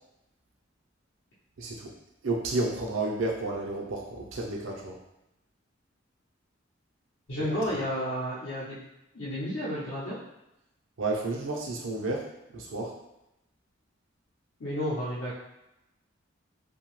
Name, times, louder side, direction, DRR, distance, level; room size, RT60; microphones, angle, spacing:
voice 1, 1.6-1.9 2.2-5.0 7.4-7.6 11.0-12.9, right 2 dB, 80° right, 0 dB, 0.6 m, -31 dB
voice 2, 7.3-8.8 9.1-10.2 14.6-15.3, equal, 75° left, -9 dB, 0.7 m, -31 dB
2.8 x 2.2 x 3.1 m, 0.90 s
head